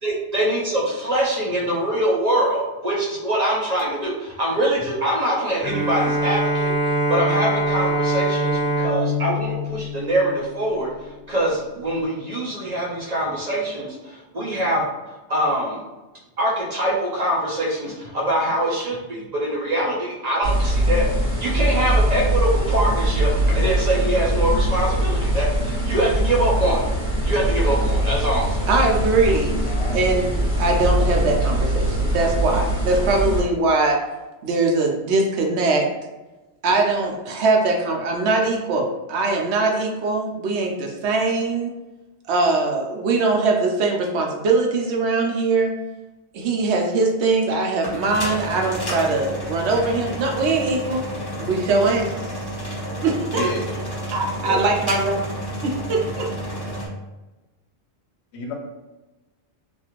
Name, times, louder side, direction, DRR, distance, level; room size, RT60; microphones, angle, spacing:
voice 1, 0.0-10.9 11.3-14.8 15.3-15.8 16.4-21.1 21.4-26.8 27.2-28.7, right 1 dB, 50° right, -4 dB, 0.5 m, -23 dB
Bowed string instrument, 5.6-10.9, right 1 dB, 10° right, 1.4 m, -23 dB
sound 1, 20.4-33.4, right 1 dB, 45° left, 1.1 m, -22 dB
voice 2, 28.7-29.5 29.9-30.3 30.6-34.0 34.4-35.9 36.6-41.7 42.3-45.7 46.3-51.0 51.4-52.1 53.0-53.5 54.1-55.2 55.6-56.3, right 3 dB, 75° right, 1 dB, 0.8 m, -21 dB
voice 3, 29.5-30.2 53.3-53.6 54.4-54.6 58.3-58.5, left 1 dB, 75° left, 1 dB, 0.9 m, -30 dB
sound 2, 47.6-56.9, right 1 dB, 25° left, 0.7 m, -31 dB
2.5 x 2.4 x 2.9 m, 1.1 s
omnidirectional pair, 1.2 m